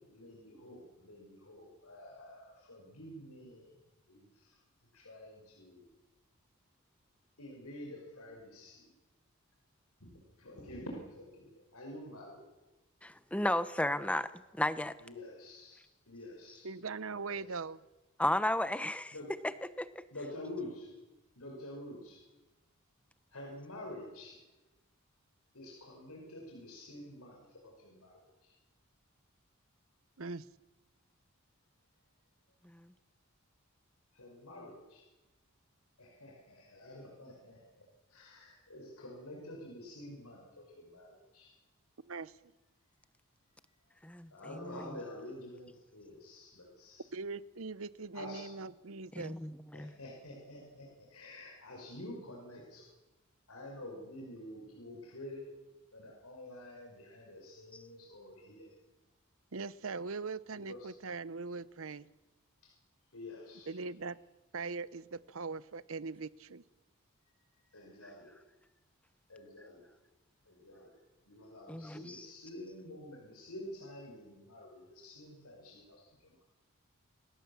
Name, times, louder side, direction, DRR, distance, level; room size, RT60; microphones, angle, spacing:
voice 1, 0.1-4.6 4.9-5.9 7.4-8.9 10.0-12.4 15.0-16.7 17.1-17.6 19.1-19.3 20.1-20.9 21.4-22.3 23.3-24.4 25.5-28.5 34.1-35.1 36.0-41.5 44.3-47.1 48.1-48.5 49.7-52.9 53.5-55.5 55.9-58.7 60.7-60.9 62.6-62.7 63.1-63.8 67.3-68.5 69.3-69.8 70.5-76.4, left 1 dB, 90° left, 5.8 m, -49 dB
voice 2, 13.0-15.0 18.2-19.1 19.8-20.0 32.6-32.9 44.0-44.3 44.6-44.8 49.1-49.9 71.7-72.3, left 1 dB, 5° left, 0.9 m, -34 dB
voice 3, 16.6-17.8 30.2-30.4 42.0-42.3 47.1-49.4 59.5-62.1 63.7-64.2 64.5-66.6, right 4 dB, 65° right, 0.8 m, -41 dB
27.5 x 19.5 x 7.3 m
head